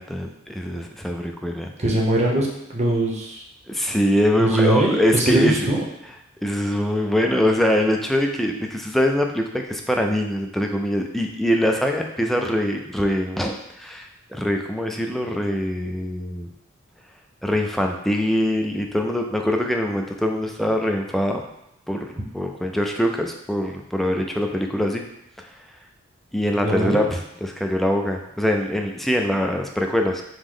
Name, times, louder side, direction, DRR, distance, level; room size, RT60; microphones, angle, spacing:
voice 1, 0.0-1.7 3.7-5.7 6.4-16.5 17.4-21.5 21.9-25.0 25.4-25.5 26.3-30.2, equal, ahead, 2 dB, 0.3 m, -23 dB
voice 2, 1.8-2.5 2.7-3.4 4.4-5.8 26.6-27.0, right 1 dB, 35° right, -1 dB, 0.7 m, -21 dB
4.9 x 2.0 x 3.7 m, 0.82 s
head